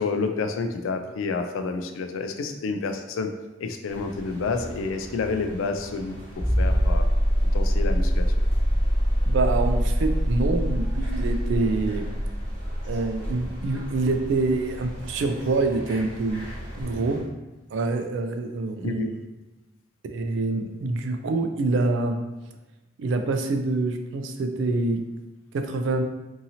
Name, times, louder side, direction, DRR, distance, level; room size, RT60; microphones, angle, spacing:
voice 1, 0.0-3.3 3.6-7.0 7.5-8.3 18.8-19.1, left 4 dB, 85° left, 6 dB, 0.3 m, -29 dB
sound 1, 3.9-17.2, equal, 50° right, 1.0 m, -39 dB
sound 2, 6.4-14.8 16.3-16.4, equal, 10° left, 0.6 m, -24 dB
voice 2, 9.3-12.0 12.9-16.4 16.8-17.2 17.7-19.2 20.1-22.2 23.0-25.0 25.5-26.0, right 3 dB, 70° right, 6 dB, 0.3 m, -26 dB
2.7 x 2.7 x 2.6 m, 1.1 s
head